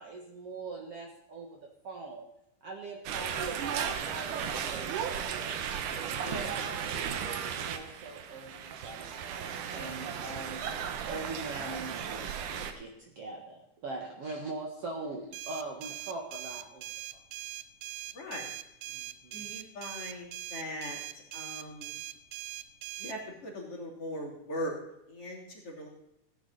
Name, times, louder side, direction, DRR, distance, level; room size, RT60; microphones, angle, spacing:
voice 1, 0.0-2.3 2.6-5.6 6.3-10.6 11.0-16.8 17.1-17.2 18.9-19.5, right 3 dB, 50° right, 0 dB, 2.1 m, -42 dB
sound 1, 3.1-12.7, right 8 dB, 70° right, 2.4 m, -35 dB
voice 2, 6.2-6.7 18.1-18.5 19.3-22.0 23.0-24.7 25.1-25.9, equal, 40° left, -2 dB, 3.8 m, -40 dB
sound 2, 15.3-23.2, right 14 dB, 90° right, 2.5 m, -41 dB
16.0 x 10.5 x 4.1 m, 0.81 s
omnidirectional pair, 4.0 m